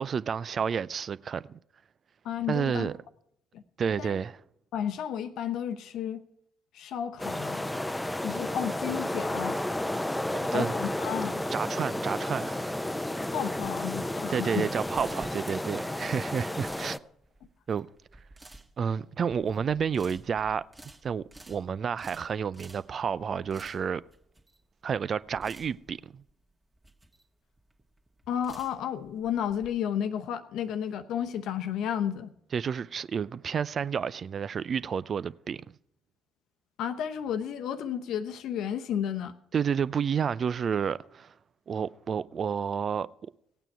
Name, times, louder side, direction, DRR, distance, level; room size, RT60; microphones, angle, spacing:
voice 1, 0.0-1.6 2.5-2.9 3.8-4.4 10.3-10.7 11.5-12.8 14.3-17.0 17.7-17.9 18.8-20.6 21.0-24.0 24.8-26.2 32.5-35.6 39.5-41.3 41.7-43.1, right 7 dB, 45° right, 0.5 m, -30 dB
voice 2, 2.2-2.9 3.5-3.6 4.0-4.1 4.7-6.2 6.7-7.8 8.2-9.6 10.4-11.4 13.3-14.7 28.3-32.3 36.8-39.3, left 9 dB, 65° left, 0.9 m, -32 dB
sound 1, 7.2-17.0, left 1 dB, 10° left, 0.7 m, -32 dB
sound 2, 14.7-29.7, right 2 dB, 20° right, 1.7 m, -53 dB
17.0 x 9.0 x 4.6 m
hypercardioid pair, 50°, 0 cm